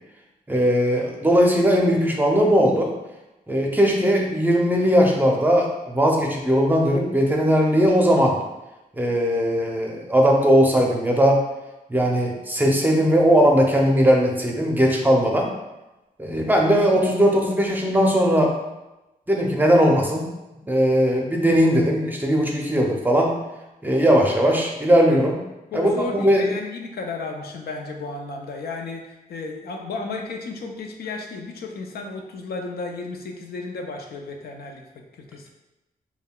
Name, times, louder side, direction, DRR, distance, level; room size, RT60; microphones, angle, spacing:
voice 1, 0.5-2.9 3.5-8.4 8.9-11.4 11.9-15.5 16.2-18.5 19.3-20.3 20.6-23.4 23.8-25.4 25.7-26.4, equal, 10° right, 0 dB, 0.5 m, -19 dB
voice 2, 25.7-35.5, left 3 dB, 85° left, 2 dB, 0.5 m, -33 dB
5.4 x 2.2 x 2.2 m, 1.0 s
cardioid pair, 100°, 16 cm